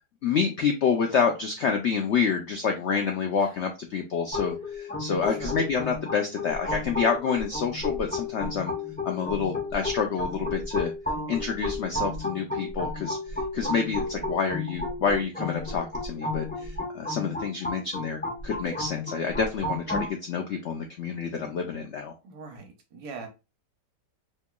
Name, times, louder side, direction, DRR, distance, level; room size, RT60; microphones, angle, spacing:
voice 1, 0.2-8.7 9.0-10.9 11.3-22.1, left 6 dB, 70° left, 4 dB, 0.6 m, -28 dB
sound 1, 4.3-20.1, left 2 dB, 5° left, 0.7 m, -33 dB
voice 2, 5.2-5.6 22.2-23.3, right 4 dB, 70° right, 4 dB, 1.4 m, -42 dB
4.4 x 3.0 x 2.2 m, 0.27 s
omnidirectional pair, 1.8 m